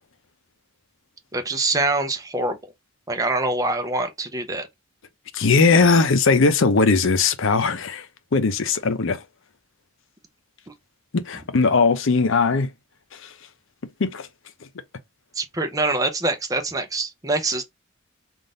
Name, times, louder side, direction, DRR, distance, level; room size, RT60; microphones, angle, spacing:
voice 1, 1.3-2.6 3.1-4.7 15.4-17.6, right 2 dB, 15° right, 0.6 m, -24 dB
voice 2, 5.3-8.1 8.3-9.2 11.1-12.7 13.2-13.3 14.0-14.3, left 4 dB, 70° left, 0.7 m, -19 dB
3.7 x 2.5 x 3.8 m
head